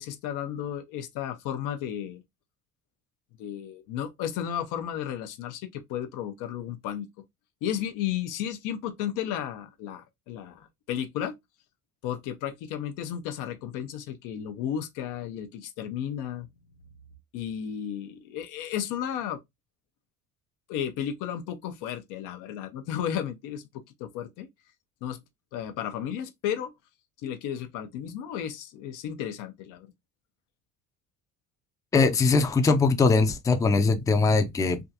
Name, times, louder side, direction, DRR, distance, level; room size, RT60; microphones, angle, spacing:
voice 1, 0.0-2.2 3.4-7.1 7.6-11.4 12.0-16.5 17.3-19.4 20.7-24.5 25.0-25.2 25.5-26.7 27.2-29.9, left 10 dB, 90° left, 0.7 m, -33 dB
voice 2, 31.9-34.8, left 4 dB, 10° left, 0.3 m, -21 dB
3.4 x 2.5 x 2.7 m
cardioid pair, 135°, 31 cm